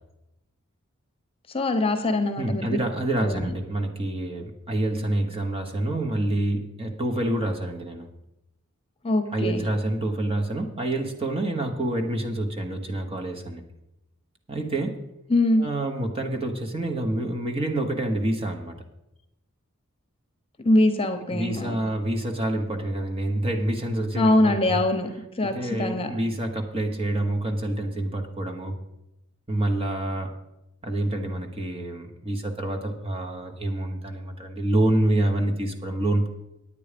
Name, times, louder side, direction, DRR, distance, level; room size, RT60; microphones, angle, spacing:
voice 1, 1.5-2.8 3.2-3.5 9.0-9.6 15.3-15.6 20.6-21.8 24.2-25.1 25.4-26.1, left 1 dB, 25° left, 6 dB, 0.9 m, -23 dB
voice 2, 2.4-8.1 9.3-13.6 14.5-15.0 15.6-18.8 21.3-24.8 25.5-28.8 29.5-30.3 30.8-36.3, right 1 dB, 25° right, 4 dB, 1.2 m, -27 dB
9.9 x 8.7 x 5.1 m, 0.90 s
head